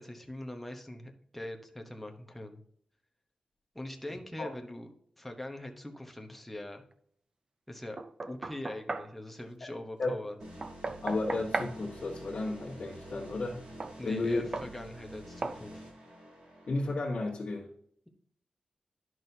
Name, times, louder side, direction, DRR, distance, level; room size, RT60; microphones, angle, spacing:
voice 1, 0.0-2.6 3.7-6.8 7.7-10.4 14.0-15.8, left 1 dB, 5° left, 3 dB, 1.0 m, -42 dB
Knock, 8.0-9.1 10.6-11.8 13.8-14.0 14.5-14.7 15.4-15.6, right 3 dB, 35° right, 0.5 m, -36 dB
sound 1, 10.4-16.9, right 1 dB, 70° right, 3.0 m, -48 dB
voice 2, 11.0-13.6 14.0-14.5 16.7-17.7, left 2 dB, 55° left, -6 dB, 1.5 m, -33 dB
11.0 x 6.2 x 2.8 m, 0.65 s
wide cardioid pair, 170°, 2 cm